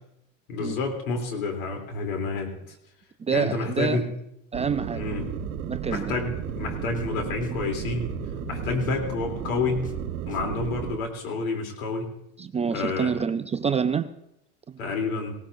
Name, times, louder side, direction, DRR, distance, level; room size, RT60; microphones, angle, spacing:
voice 1, 0.5-2.7 3.3-4.0 4.9-5.3 5.9-8.1 8.5-9.9 10.3-12.1 12.7-13.1 14.8-15.3, left 3 dB, 75° left, 3 dB, 3.3 m, -29 dB
voice 2, 3.2-4.0 4.5-5.0 5.7-6.0 12.4-14.1 14.7-14.8, right 6 dB, 15° right, 10 dB, 0.4 m, -27 dB
sound 1, 4.5-11.0, right 11 dB, 70° right, 1.2 m, -34 dB
sound 2, 5.2-10.9, left 5 dB, 20° left, 1.0 m, -42 dB
19.0 x 17.5 x 2.6 m, 0.81 s
hypercardioid pair, 95°, 41 cm